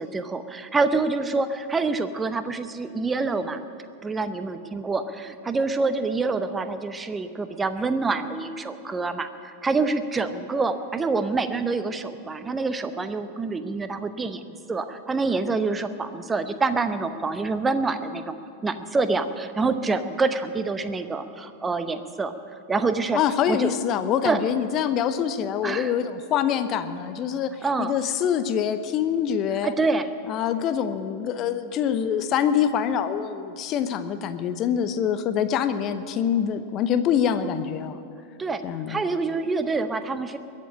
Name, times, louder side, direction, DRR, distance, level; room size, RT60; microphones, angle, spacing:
voice 1, 0.0-3.6 4.0-18.3 18.6-22.3 22.7-23.2 23.5-23.7 24.2-24.4 25.6-25.9 27.6-27.9 29.6-30.1 38.4-38.6 38.9-40.4, right 3 dB, 15° right, 10 dB, 0.9 m, -26 dB
voice 2, 23.1-27.5 27.8-29.7 30.3-38.0 38.6-39.0, left 8 dB, 35° left, 11 dB, 0.8 m, -25 dB
21.5 x 7.5 x 8.6 m, 2.6 s
figure-of-eight pair, 90°, 0 cm